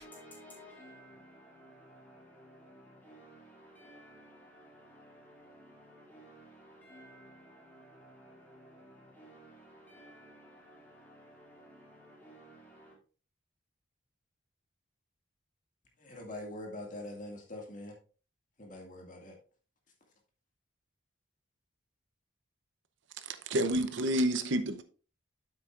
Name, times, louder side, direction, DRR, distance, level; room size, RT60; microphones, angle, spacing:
voice 1, 0.0-12.9, equal, 10° left, 3.9 m, -55 dB
voice 2, 16.0-17.9 18.6-19.4, left 1 dB, 40° left, 2.2 m, -43 dB
voice 3, 23.2-24.8, right 1 dB, 70° right, 0.7 m, -29 dB
9.4 x 7.9 x 2.5 m
head